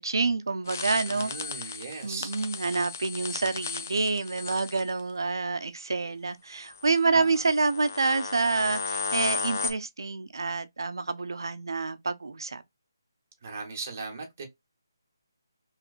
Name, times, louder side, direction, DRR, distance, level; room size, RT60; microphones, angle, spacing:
voice 1, 0.0-1.7 2.0-12.6, right 3 dB, 75° right, 0.5 m, -28 dB
sound 1, 0.7-5.0 6.7-6.9 7.5-9.7, left 5 dB, 40° left, 0.4 m, -35 dB
voice 2, 1.1-2.3 7.1-7.4 13.4-14.4, right 4 dB, 30° right, 0.9 m, -38 dB
3.1 x 2.9 x 2.4 m
hypercardioid pair, 175°, 2 cm